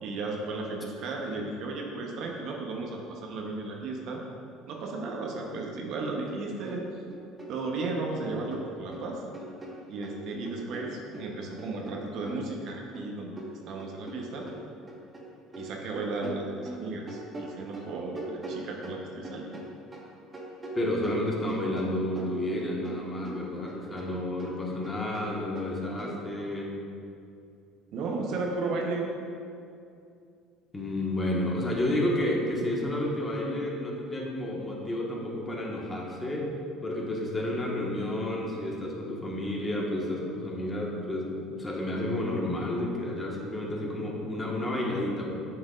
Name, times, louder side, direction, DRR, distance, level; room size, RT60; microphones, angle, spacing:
voice 1, 0.0-4.2 4.7-6.8 7.5-9.2 9.9-13.3 13.7-14.5 15.5-19.6 27.9-29.1, right 3 dB, 60° right, 0 dB, 1.0 m, -34 dB
sound 1, 6.3-6.4 6.7-7.9 8.2-10.2 10.5-15.2 15.5-20.1 20.3-23.0 23.2-26.1, right 1 dB, 25° right, 1.3 m, -42 dB
voice 2, 20.7-26.7 30.7-36.5 36.8-45.3, left 1 dB, 25° left, -2 dB, 1.4 m, -31 dB
7.5 x 6.1 x 2.5 m, 2.5 s
supercardioid pair, 80°, 0 cm